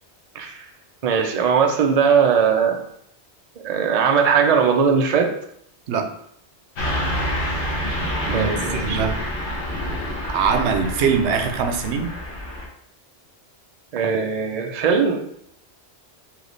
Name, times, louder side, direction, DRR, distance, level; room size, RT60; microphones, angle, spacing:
voice 1, 0.3-0.6 1.0-2.8 3.6-5.3 8.3-9.0 13.9-15.2, right 6 dB, 45° right, 3 dB, 0.5 m, -19 dB
Car passing by / Truck, 6.8-12.7, equal, 55° left, 0.9 m, -27 dB
voice 2, 8.3-9.2 10.3-12.1, right 6 dB, 90° right, 6 dB, 0.9 m, -22 dB
3.3 x 2.8 x 3.9 m, 0.69 s
omnidirectional pair, 1.1 m